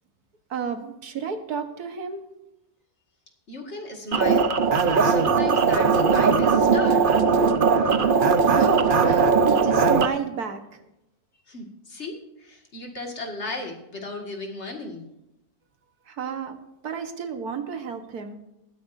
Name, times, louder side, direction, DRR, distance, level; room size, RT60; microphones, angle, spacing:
voice 1, 0.5-2.2 8.5-10.6 16.1-16.6 16.8-18.3, right 6 dB, 75° right, 7 dB, 1.8 m, -31 dB
voice 2, 3.5-7.0 11.5-15.1, left 2 dB, 45° left, 2 dB, 2.3 m, -36 dB
sound 1, 4.1-10.1, right 5 dB, 45° right, 0.8 m, -19 dB
20.0 x 10.0 x 2.7 m, 0.90 s
omnidirectional pair, 1.6 m